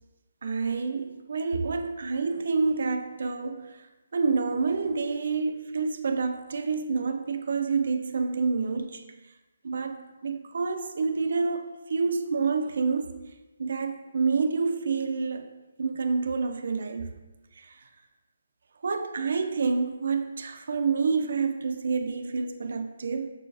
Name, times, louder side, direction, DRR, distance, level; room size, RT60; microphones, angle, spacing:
voice 1, 0.4-3.9 4.1-9.0 9.6-13.2 13.6-17.2 17.6-17.9 18.8-23.3, right 4 dB, 55° right, 0.3 m, -28 dB
6.6 x 2.3 x 2.3 m
hypercardioid pair, 175°, 0 cm